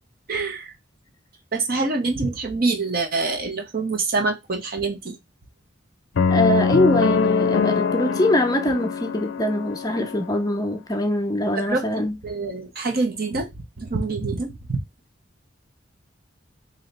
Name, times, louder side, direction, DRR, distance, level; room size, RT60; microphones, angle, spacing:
voice 1, 0.3-0.7 1.5-5.2 11.6-11.8 12.2-13.5 13.8-14.8, right 3 dB, 50° right, 0.9 m, -25 dB
sound 1, 6.2-10.3, left 5 dB, 75° left, 0.4 m, -23 dB
voice 2, 6.3-12.1, left 1 dB, 20° left, 0.5 m, -23 dB
3.2 x 2.8 x 4.0 m
head